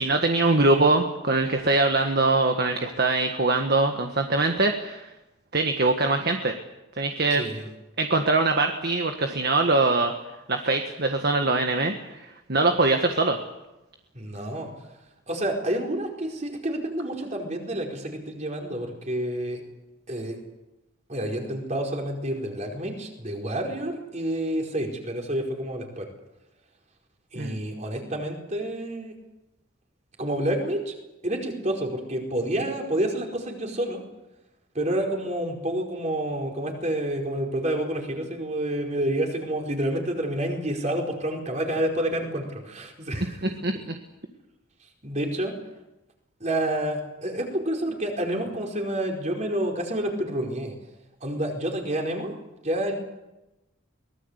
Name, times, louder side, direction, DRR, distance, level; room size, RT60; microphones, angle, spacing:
voice 1, 0.0-5.1 5.5-6.5 7.0-7.4 8.0-10.1 10.5-13.4 27.4-27.6 43.4-43.7, right 2 dB, 50° right, 5 dB, 1.6 m, -23 dB
voice 2, 7.3-7.7 14.1-14.7 15.3-19.6 20.1-20.4 21.1-26.1 27.3-29.1 30.2-30.9 31.2-34.0 34.7-43.4 45.0-45.5 46.4-50.7 51.2-52.3 52.6-53.0, right 1 dB, 35° right, 1 dB, 4.7 m, -29 dB
23.5 x 20.0 x 8.2 m, 0.98 s
head